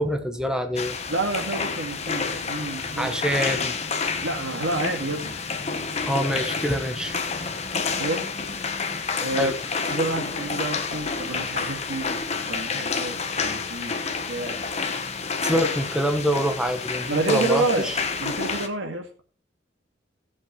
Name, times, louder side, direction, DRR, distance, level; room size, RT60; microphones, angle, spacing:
voice 1, 0.0-1.0 3.0-3.8 6.0-7.7 9.4-9.6 15.4-18.0, equal, 5° right, 6 dB, 1.0 m, -26 dB
sound 1, 0.8-18.7, left 4 dB, 35° left, 1.1 m, -29 dB
voice 2, 1.1-3.3 4.2-5.4 7.9-8.3 9.2-9.5 9.9-14.6 17.1-17.9 18.2-19.2, right 2 dB, 90° right, 4 dB, 2.2 m, -29 dB
16.5 x 7.3 x 3.2 m, 0.36 s
head